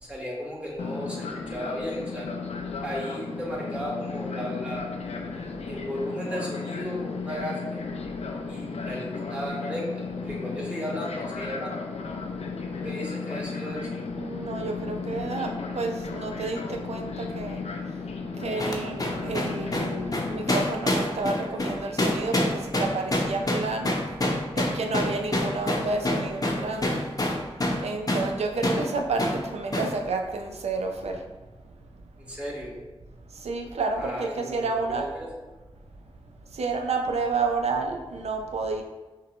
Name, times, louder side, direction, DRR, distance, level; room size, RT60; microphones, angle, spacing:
voice 1, 0.0-2.3 2.8-4.9 5.7-7.8 8.5-11.7 12.7-13.9 32.2-32.8 33.9-35.3, equal, 10° right, -4 dB, 1.5 m, -35 dB
Fixed-wing aircraft airplane, 0.8-20.6, left 4 dB, 90° left, 0.4 m, -34 dB
voice 2, 14.2-18.0 18.3-27.0 27.8-31.3 31.6-31.8 33.3-35.1 36.4-38.8, right 3 dB, 85° right, 4 dB, 0.5 m, -30 dB
sound 1, 18.6-27.8 28.1-28.3 28.6-28.8 29.2-29.4 29.7-29.9, left 1 dB, 35° left, 0.7 m, -26 dB
5.7 x 2.2 x 3.0 m, 1.2 s
cardioid pair, 45°, 11 cm